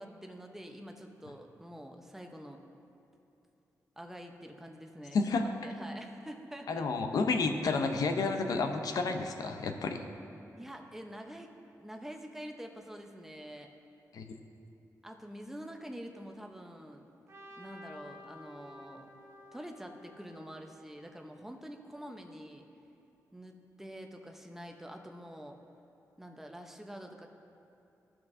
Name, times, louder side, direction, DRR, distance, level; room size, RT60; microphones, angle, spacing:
voice 1, 0.0-2.6 4.0-5.3 5.6-6.8 10.6-13.7 15.0-17.1 17.5-19.1 19.5-22.7 23.3-25.6 26.2-27.3, equal, 5° right, 3 dB, 0.8 m, -46 dB
voice 2, 6.7-10.0 14.1-14.3, left 4 dB, 75° left, 6 dB, 0.6 m, -30 dB
Trumpet, 17.3-21.4, left 1 dB, 45° right, 1.0 m, -53 dB
14.5 x 6.0 x 2.6 m, 3.0 s
cardioid pair, 90°, 6 cm